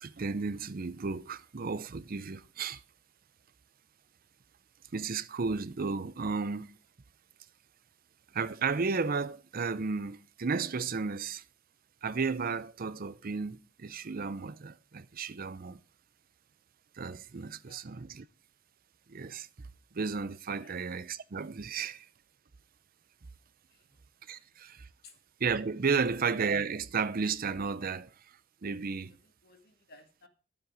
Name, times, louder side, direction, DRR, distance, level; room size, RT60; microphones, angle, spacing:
voice 1, 0.0-2.8 4.9-6.8 8.3-11.4 12.0-15.8 16.9-18.2 19.1-19.7 19.9-22.1 24.2-24.9 25.4-29.2, right 5 dB, 50° right, 0.6 m, -33 dB
voice 2, 17.4-18.1 20.6-20.8 23.6-24.0 24.4-24.5 25.0-25.2 26.0-26.1 29.0-30.3, left 3 dB, 55° left, 2.2 m, -59 dB
12.0 x 7.5 x 4.8 m
head